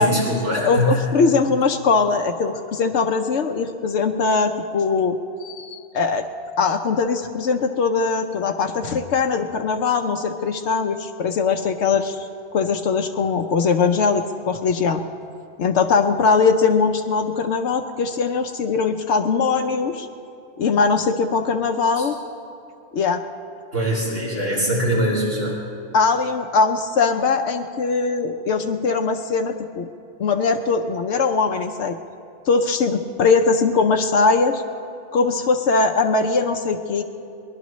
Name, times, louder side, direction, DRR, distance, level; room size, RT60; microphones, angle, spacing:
voice 1, 0.0-1.0 22.0-22.1 23.7-25.6, equal, 60° right, -5 dB, 4.9 m, -22 dB
voice 2, 0.5-6.3 6.6-15.0 15.6-20.1 20.6-22.2 22.9-23.2 25.9-29.9 30.2-32.0 32.5-34.6 35.1-37.0, left 4 dB, 85° left, 4 dB, 1.0 m, -21 dB
22.5 x 19.5 x 3.1 m, 2.6 s
omnidirectional pair, 1.1 m